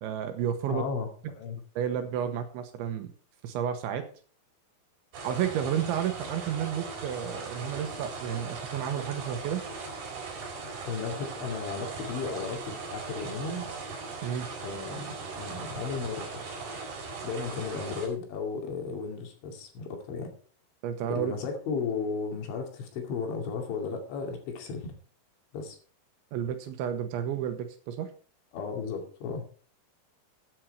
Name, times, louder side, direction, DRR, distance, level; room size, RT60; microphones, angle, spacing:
voice 1, 0.0-0.8 1.8-3.1 3.4-4.0 5.2-9.6 14.2-14.5 20.8-21.3 26.3-28.1, right 9 dB, 75° right, 8 dB, 3.1 m, -31 dB
voice 2, 0.7-1.6 10.9-13.7 14.6-16.5 17.2-20.3 21.1-24.9 25.5-25.8 28.5-29.4, left 5 dB, 65° left, 3 dB, 4.6 m, -35 dB
sound 1, 5.1-18.1, right 4 dB, 55° right, 5.5 m, -39 dB
14.0 x 9.0 x 4.5 m, 0.41 s
omnidirectional pair, 5.9 m